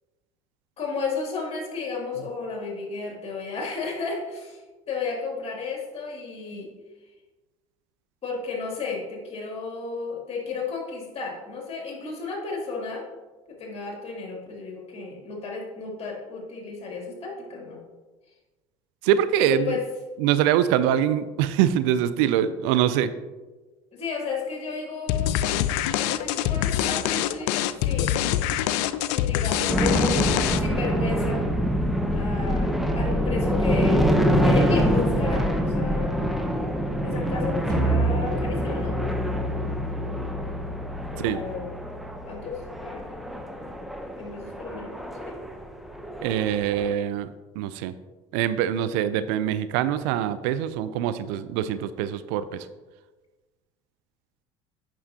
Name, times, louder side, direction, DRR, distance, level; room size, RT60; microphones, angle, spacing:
voice 1, 0.8-6.7 8.2-13.0 13.5-17.8 19.4-19.8 23.9-25.3 26.0-28.3 29.1-30.3 30.6-31.4 32.1-34.0 34.3-36.2 37.0-39.0 41.1-41.7 42.3-43.1 44.2-45.4, left 4 dB, 40° left, -1 dB, 2.5 m, -33 dB
voice 2, 19.0-19.7 20.2-23.1 41.2-41.4 46.2-47.3 47.6-47.9 48.3-52.6, right 10 dB, 70° right, 13 dB, 0.4 m, -24 dB
sound 1, 25.1-30.8, left 12 dB, 70° left, 0.4 m, -25 dB
sound 2, 29.7-46.9, equal, ahead, 0.8 m, -26 dB
sound 3, 37.7-43.0, right 1 dB, 25° right, 1.4 m, -30 dB
8.9 x 6.0 x 2.8 m, 1.2 s
hypercardioid pair, 70°, 16 cm